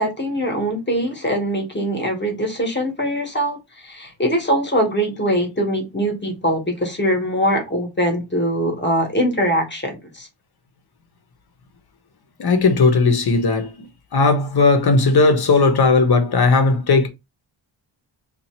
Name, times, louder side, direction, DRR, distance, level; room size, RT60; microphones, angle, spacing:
voice 1, 0.0-3.6 3.8-10.3, equal, 25° left, 1.1 m, -22 dB
voice 2, 12.4-13.9 14.1-17.1, left 3 dB, 55° left, 0.8 m, -16 dB
2.8 x 2.5 x 4.2 m
wide cardioid pair, 160°, 47 cm